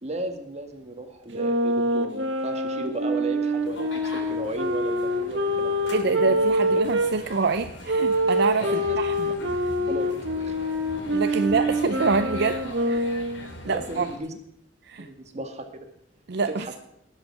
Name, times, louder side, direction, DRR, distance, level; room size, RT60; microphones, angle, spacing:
voice 1, 0.0-5.8 8.6-9.1 9.9-10.7 11.0-11.4 13.7-14.3 15.0-15.9 16.5-16.8, right 1 dB, 40° right, 5 dB, 1.9 m, -35 dB
sound 1, 1.3-7.1 7.9-13.5, equal, 85° right, 1.7 m, -25 dB
sound 2, 3.6-14.2, left 1 dB, 85° left, 3.5 m, -42 dB
voice 2, 5.9-9.3 9.6-9.7 11.1-13.1 13.6-14.1 14.8-15.1 16.3-16.8, right 4 dB, 65° right, 9 dB, 0.6 m, -26 dB
19.0 x 8.0 x 6.0 m, 0.76 s
head